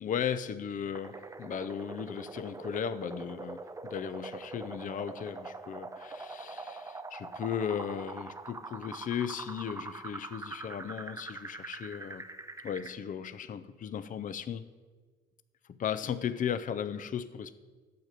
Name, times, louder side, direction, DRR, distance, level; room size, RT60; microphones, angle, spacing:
voice 1, 0.0-12.2 12.6-14.6 15.8-17.5, left 8 dB, 40° left, 12 dB, 0.5 m, -36 dB
sound 1, 1.0-13.0, right 3 dB, 15° right, 0.5 m, -43 dB
9.3 x 5.0 x 7.7 m, 1.4 s
cardioid pair, 90°, 20 cm